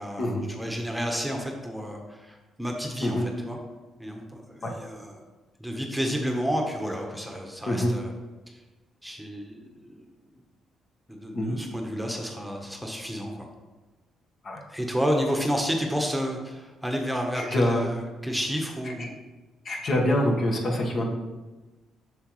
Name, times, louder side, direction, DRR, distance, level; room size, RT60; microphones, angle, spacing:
voice 1, 0.0-3.6 4.0-5.2 5.6-8.1 8.5-8.6 9.0-10.0 11.1-13.5 14.7-19.1, equal, ahead, 1 dB, 1.1 m, -31 dB
voice 2, 17.3-17.9 19.6-21.1, left 1 dB, 50° left, 0 dB, 1.4 m, -25 dB
7.9 x 6.4 x 3.2 m, 1.2 s
cardioid pair, 90°, 0 cm